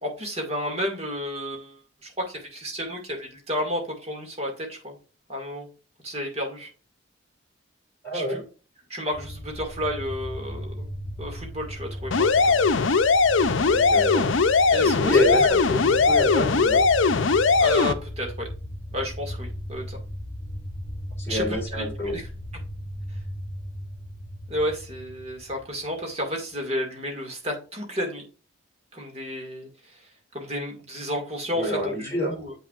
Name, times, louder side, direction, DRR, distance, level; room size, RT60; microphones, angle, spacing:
voice 1, 0.0-5.0 5.3-5.7 6.0-6.7 8.1-8.4 8.9-10.9 11.2-12.6 14.7-15.4 17.6-18.5 18.9-20.0 21.3-21.4 21.7-22.3 24.5-28.2 28.9-30.0 30.3-32.5, equal, 30° right, 1 dB, 2.2 m, -32 dB
voice 2, 8.0-8.4 13.6-14.2 14.8-16.8 21.2-22.2 31.5-32.3, left 1 dB, 10° left, -4 dB, 3.1 m, -27 dB
sound 1, 9.1-25.9, equal, 5° right, 3.0 m, -36 dB
sound 2, 12.1-17.9, left 4 dB, 70° left, 0.6 m, -20 dB
7.7 x 6.0 x 2.5 m, 0.35 s
head